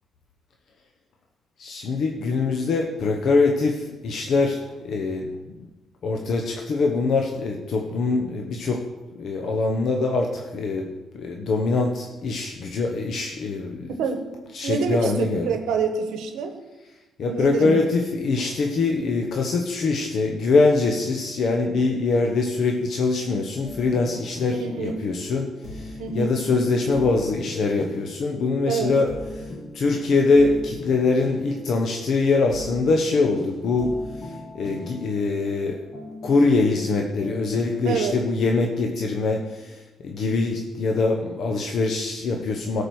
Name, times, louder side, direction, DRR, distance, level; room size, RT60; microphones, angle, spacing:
voice 1, 1.6-4.6 4.8-5.6 6.0-8.8 9.1-10.9 11.1-13.9 14.5-15.5 17.2-29.1 29.4-29.5 29.7-35.8 36.2-42.8, left 3 dB, 65° left, 2 dB, 1.0 m, -23 dB
voice 2, 13.9-14.2 14.6-16.5 17.3-17.8 24.5-25.1 26.0-26.4 28.7-29.0 37.8-38.2, right 5 dB, 85° right, 7 dB, 1.0 m, -27 dB
sound 1, 23.6-38.3, left 2 dB, 40° left, 1.7 m, -39 dB
13.0 x 5.0 x 6.2 m, 1.1 s
cardioid pair, 90°, 0 cm